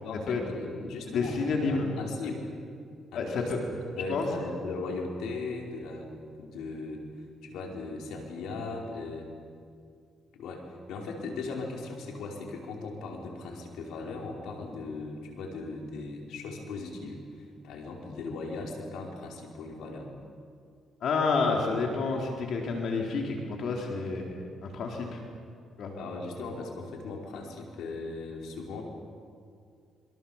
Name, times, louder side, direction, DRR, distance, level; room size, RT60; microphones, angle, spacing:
voice 1, 0.0-2.5 3.1-3.5 3.9-6.1 6.4-7.0 7.4-9.3 10.3-20.1 25.9-28.8, left 3 dB, 85° left, 0 dB, 5.1 m, -38 dB
voice 2, 1.1-1.9 3.1-3.6 4.1-4.3 21.0-25.2 25.8-25.9, left 4 dB, 65° left, 0 dB, 3.9 m, -29 dB
27.0 x 23.5 x 7.3 m, 2.3 s
cardioid pair, 90°, 0 cm